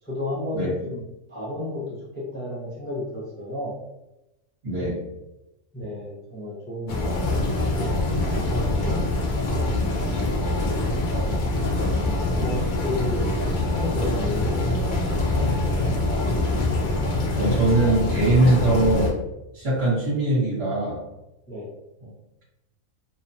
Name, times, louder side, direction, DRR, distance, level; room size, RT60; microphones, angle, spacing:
voice 1, 0.0-1.0 1.3-3.7 5.7-7.3 7.5-9.0 12.4-15.9 21.5-21.7, left 1 dB, 10° left, -8 dB, 0.5 m, -33 dB
voice 2, 4.6-5.0 17.3-19.1 19.5-21.0, right 2 dB, 50° right, -7 dB, 1.4 m, -21 dB
sound 1, 6.9-19.1, left 2 dB, 75° left, 0.4 m, -24 dB
2.8 x 2.3 x 2.6 m, 0.93 s
omnidirectional pair, 1.5 m